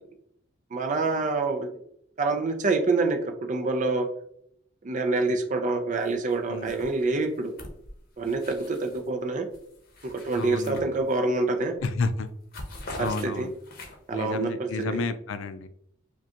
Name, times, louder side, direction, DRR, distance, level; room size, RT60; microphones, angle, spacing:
voice 1, 0.7-1.7 2.2-4.1 4.8-7.5 8.2-9.5 10.0-11.7 13.0-13.5 14.1-15.0, right 3 dB, 40° right, 6 dB, 0.5 m, -26 dB
sound 1, 6.0-6.4 6.6-9.1 9.5-11.4 11.8-12.0 12.3-14.2, left 1 dB, 50° left, 0.8 m, -44 dB
voice 2, 10.3-10.9 11.8-12.3 13.0-13.5 14.1-15.7, left 4 dB, 70° left, 11 dB, 0.4 m, -31 dB
4.9 x 2.3 x 2.8 m, 0.70 s
head